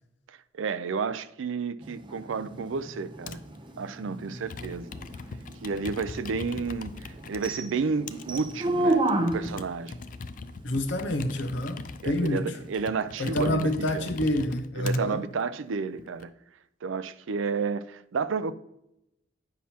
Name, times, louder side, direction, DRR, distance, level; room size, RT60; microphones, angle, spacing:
voice 1, 0.3-3.4 3.8-4.9 5.6-9.0 9.3-10.0 12.0-14.1 14.8-16.3 16.8-18.5, right 5 dB, 75° right, 0.4 m, -31 dB
sound 1, 1.8-9.7 12.7-12.8, right 2 dB, 25° right, 0.6 m, -32 dB
Computer keyboard, 3.3-3.6 4.3-7.5 8.1-15.0 15.7-16.2, left 4 dB, 40° left, 0.4 m, -41 dB
voice 2, 10.6-12.5 13.2-15.2, left 1 dB, 65° left, 0.8 m, -28 dB
9.4 x 5.7 x 2.8 m
head